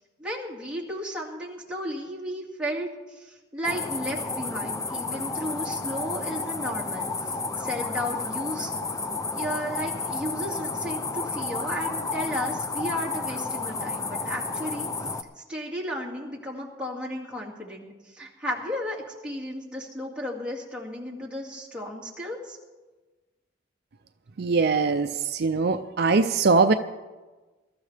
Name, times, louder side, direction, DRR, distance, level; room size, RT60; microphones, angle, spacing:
voice 1, 0.2-8.7 9.3-14.9 15.5-22.6, equal, 5° right, -4 dB, 2.2 m, -34 dB
sound 1, 3.6-15.2, left 3 dB, 15° left, 0.5 m, -31 dB
voice 2, 24.4-26.7, right 4 dB, 55° right, 8 dB, 0.5 m, -22 dB
21.5 x 13.0 x 3.4 m, 1.2 s
head